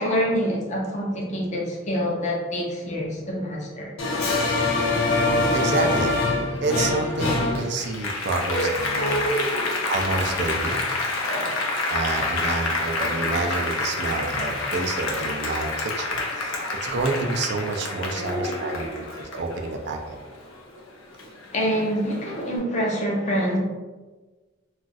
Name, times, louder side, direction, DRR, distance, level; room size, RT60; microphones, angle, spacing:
voice 1, 0.0-3.9 8.5-8.7 8.9-9.7 11.0-11.6 16.5-16.6 18.2-19.0 21.5-23.6, equal, 35° left, -2 dB, 0.6 m, -27 dB
Applause, 4.0-20.8 21.2-22.4, left 2 dB, 75° left, 0.5 m, -26 dB
voice 2, 5.5-6.2 6.6-9.3 9.9-10.8 11.9-20.2, right 3 dB, 55° right, 3 dB, 0.4 m, -28 dB
2.4 x 2.3 x 3.9 m, 1.3 s
head